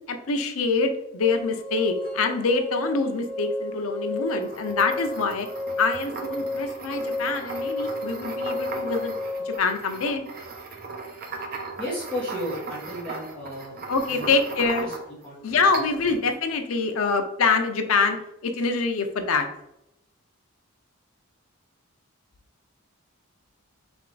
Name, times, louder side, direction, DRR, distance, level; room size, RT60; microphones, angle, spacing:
voice 1, 0.1-5.5 5.8-9.1 9.5-10.2 13.9-14.9 15.4-18.2 18.4-19.5, left 4 dB, 70° left, 6 dB, 0.5 m, -25 dB
sound 1, 1.2-9.6, left 1 dB, 60° right, 1.3 m, -32 dB
sound 2, 4.3-15.3 15.7-16.2, right 4 dB, 45° right, 0.6 m, -38 dB
voice 2, 11.8-13.7 14.1-14.3 14.8-14.9 15.2-15.7, left 1 dB, 5° left, -11 dB, 1.2 m, -34 dB
3.5 x 3.3 x 3.8 m, 0.84 s
head